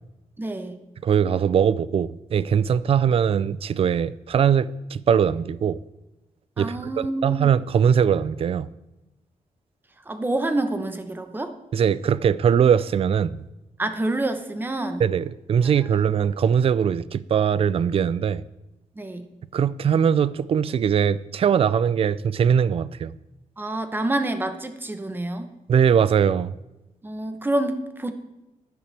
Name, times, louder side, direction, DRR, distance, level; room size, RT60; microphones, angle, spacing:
voice 1, 0.4-0.8 6.6-7.5 10.1-11.5 13.8-15.0 15.9-16.0 19.0-19.3 23.6-25.5 27.0-28.1, right 2 dB, 15° right, 0.9 m, -27 dB
voice 2, 1.0-5.8 6.6-8.7 11.7-13.4 15.0-18.4 19.5-23.1 25.7-26.5, right 7 dB, 45° right, 0.4 m, -21 dB
14.5 x 11.0 x 3.3 m
wide cardioid pair, 175°, 13 cm